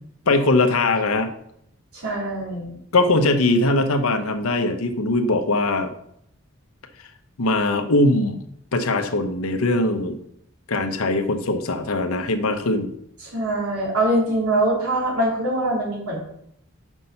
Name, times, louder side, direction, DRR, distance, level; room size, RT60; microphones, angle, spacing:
voice 1, 0.3-1.3 2.9-5.9 7.4-8.4 8.7-10.2 10.7-12.9, left 2 dB, 75° left, 8 dB, 0.8 m, -21 dB
voice 2, 1.9-2.8 13.2-16.2, right 1 dB, 85° right, -3 dB, 3.0 m, -23 dB
6.1 x 5.4 x 5.6 m, 0.73 s
head